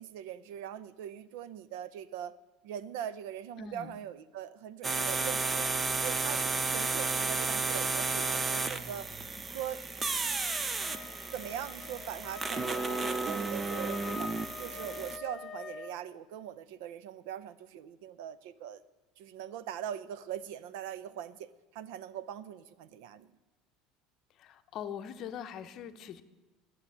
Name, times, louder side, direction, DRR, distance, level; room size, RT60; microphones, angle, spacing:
voice 1, 0.0-2.4 2.6-5.7 6.0-9.1 9.5-10.1 11.3-18.8 19.2-23.4, right 10 dB, 75° right, 0.6 m, -42 dB
voice 2, 3.6-4.0 24.3-26.2, left 8 dB, 40° left, 0.8 m, -42 dB
sound 1, 4.8-15.2, right 4 dB, 15° right, 0.5 m, -33 dB
Wind instrument woodwind instrument, 10.8-16.0, left 3 dB, 15° left, 2.1 m, -43 dB
11.5 x 7.9 x 8.5 m
cardioid pair, 155°, 0 cm